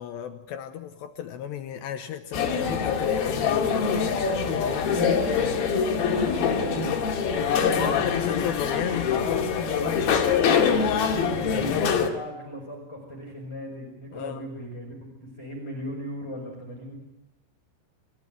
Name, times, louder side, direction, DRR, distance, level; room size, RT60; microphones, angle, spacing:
voice 1, 0.0-5.1 7.4-10.3 14.1-14.4, left 9 dB, 75° left, 7 dB, 2.9 m, -34 dB
sound 1, 2.3-12.1, left 6 dB, 55° left, 3.6 m, -24 dB
voice 2, 4.9-6.9 7.4-8.1 10.0-11.8 12.1-14.9 15.4-17.0, equal, 5° left, -1 dB, 4.5 m, -37 dB
28.0 x 16.0 x 9.2 m, 0.97 s
omnidirectional pair, 5.6 m